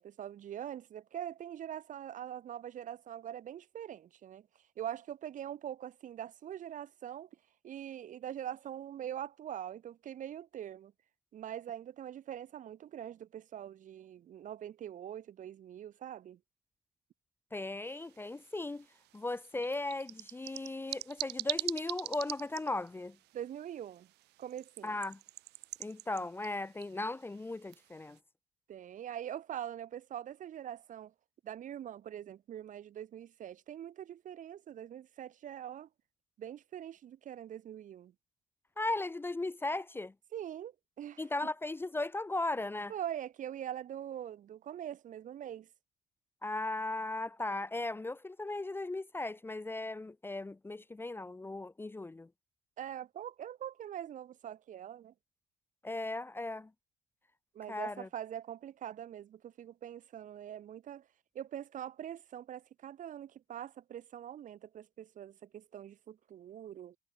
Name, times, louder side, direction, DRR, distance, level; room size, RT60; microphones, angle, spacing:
voice 1, 0.0-4.5 4.8-7.3 7.6-10.9 11.3-16.4 23.3-24.1 24.4-25.0 28.7-31.1 31.4-35.9 36.4-38.1 40.3-41.2 42.9-45.7 52.8-55.1 57.5-61.1 61.3-67.0, right 10 dB, 50° right, 0.8 m, -43 dB
voice 2, 17.5-18.9 19.1-23.2 24.8-25.2 25.8-28.2 38.8-40.1 41.2-42.9 46.4-52.3 55.8-56.7 57.7-58.1, left 2 dB, 15° left, 0.6 m, -37 dB
sound 1, 17.8-28.2, right 18 dB, 85° right, 2.2 m, -45 dB
cardioid pair, 110°, 17 cm